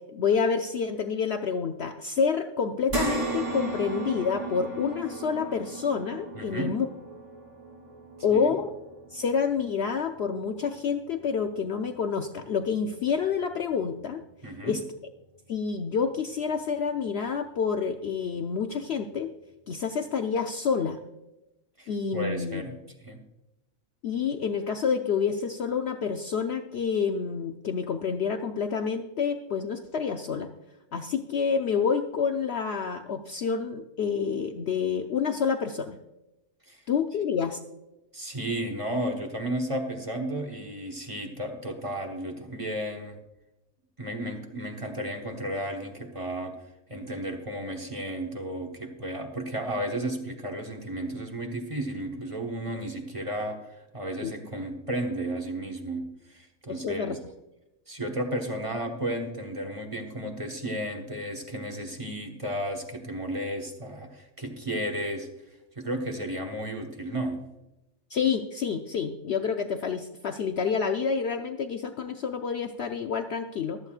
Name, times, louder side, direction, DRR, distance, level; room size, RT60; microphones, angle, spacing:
voice 1, 0.1-6.9 8.2-8.7 9.1-14.2 14.6-14.8 15.5-19.3 19.7-21.0 21.9-22.6 24.0-30.5 30.9-36.0 36.9-37.6 54.2-54.3 56.7-57.2 68.1-73.8, left 6 dB, 60° left, 6 dB, 0.7 m, -28 dB
sound 1, 2.9-11.5 11.9-12.1 13.5-13.6, right 3 dB, 40° right, 3.4 m, -36 dB
voice 2, 6.3-6.8 8.3-8.5 14.4-14.8 21.8-23.2 36.7-36.8 38.1-43.2 44.0-46.6 46.9-57.2 57.9-65.3 65.7-67.5, right 1 dB, 25° right, 1 dB, 1.3 m, -33 dB
23.5 x 8.1 x 2.4 m, 0.94 s
omnidirectional pair, 1.4 m